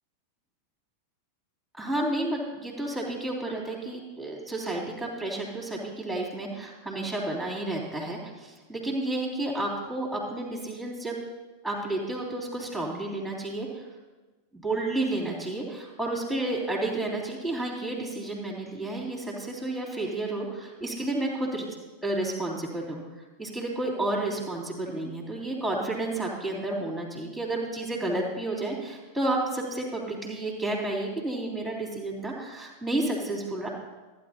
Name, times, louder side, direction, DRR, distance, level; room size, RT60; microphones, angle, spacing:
voice 1, 1.8-11.2 11.6-13.9 14.5-21.7 22.0-23.0 23.4-33.7, right 2 dB, ahead, -2 dB, 3.1 m, -31 dB
15.0 x 9.6 x 2.8 m, 1.2 s
figure-of-eight pair, 90°, 0 cm